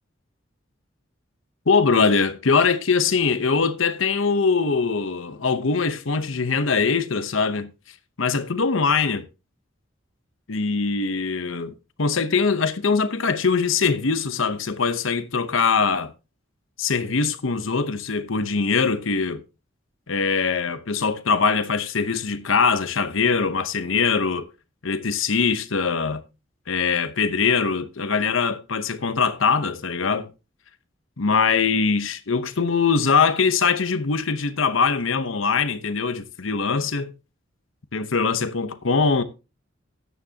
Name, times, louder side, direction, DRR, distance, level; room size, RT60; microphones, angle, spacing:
voice 1, 1.7-7.7 8.2-9.3 10.5-16.1 16.8-19.4 20.1-24.5 24.8-26.2 26.7-30.3 31.2-37.1 37.9-39.2, left 5 dB, 80° left, 0.9 m, -22 dB
13.5 x 9.3 x 2.8 m
head